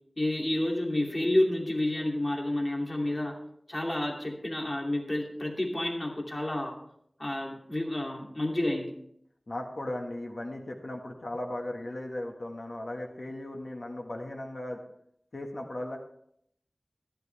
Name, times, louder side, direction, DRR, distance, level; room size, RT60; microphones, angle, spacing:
voice 1, 0.2-3.3 3.7-6.8 7.2-8.9, left 1 dB, 35° left, 0 dB, 2.6 m, -30 dB
voice 2, 9.5-14.8 15.3-16.0, left 1 dB, 65° left, 1 dB, 1.6 m, -37 dB
13.0 x 11.5 x 3.4 m, 0.71 s
wide cardioid pair, 60°, 0 cm